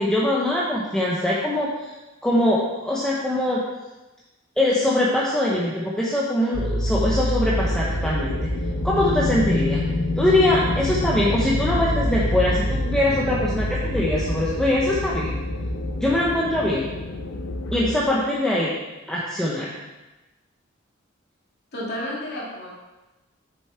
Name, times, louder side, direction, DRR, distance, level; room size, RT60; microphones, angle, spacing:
voice 1, 0.0-1.9 2.2-3.6 4.6-8.5 8.8-9.8 10.2-15.4 16.0-16.9 17.7-18.7 19.1-19.7, left 1 dB, 5° left, -6 dB, 0.9 m, -22 dB
sound 1, 6.5-16.8, right 1 dB, 40° right, 0.5 m, -28 dB
sound 2, 7.5-18.0, left 3 dB, 90° left, 0.8 m, -29 dB
voice 2, 21.7-22.7, left 1 dB, 55° left, -5 dB, 2.5 m, -31 dB
7.0 x 6.9 x 4.4 m, 1.1 s
head